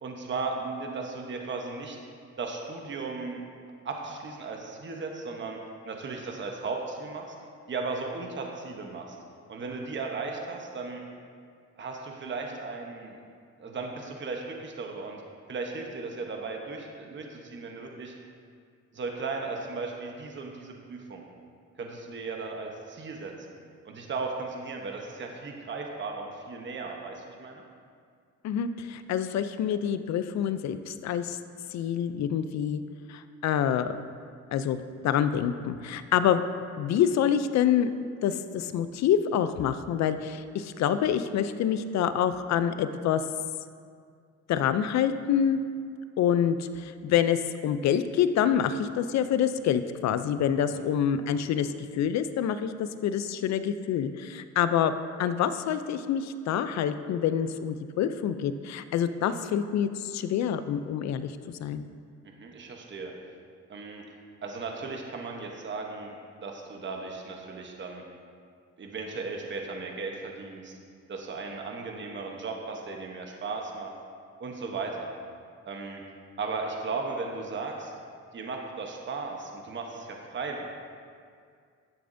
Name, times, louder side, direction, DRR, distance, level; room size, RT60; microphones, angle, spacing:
voice 1, 0.0-2.0 2.4-3.4 3.8-5.6 5.8-7.4 7.7-9.2 9.5-11.0 11.8-13.2 13.6-15.2 15.5-18.1 18.9-21.3 21.8-23.5 23.8-27.6 50.7-50.9 62.2-63.1 63.7-64.0 64.4-66.2 66.4-68.0 68.8-70.8 71.1-73.9 74.4-75.1 75.7-76.0 76.4-77.9 78.3-80.6, right 4 dB, 40° right, 1 dB, 1.0 m, -36 dB
voice 2, 28.4-31.4 31.7-32.8 33.1-34.0 34.5-34.8 35.0-36.4 36.8-37.9 38.2-43.2 44.5-45.6 46.2-54.9 55.2-61.9, left 9 dB, 65° left, 12 dB, 0.5 m, -27 dB
11.5 x 6.8 x 2.6 m, 2.2 s
cardioid pair, 90°, 30 cm